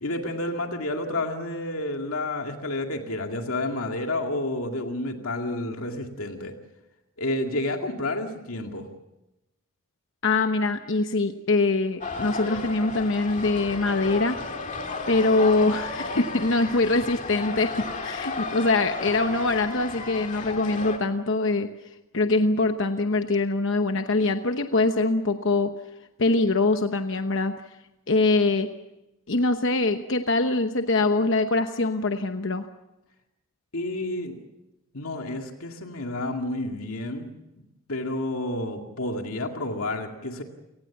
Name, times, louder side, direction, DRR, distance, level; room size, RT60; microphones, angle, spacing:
voice 1, 0.0-6.5 7.2-8.9 33.7-34.4 34.9-37.3 37.9-40.4, left 2 dB, 75° left, 3 dB, 2.3 m, -30 dB
voice 2, 10.2-14.4 15.1-21.7 22.1-25.7 26.2-27.5 28.1-28.7 29.3-32.7, left 3 dB, 55° left, 7 dB, 1.0 m, -23 dB
sound 1, 12.0-21.0, left 3 dB, 35° left, 2.4 m, -33 dB
29.0 x 19.0 x 7.2 m, 0.96 s
head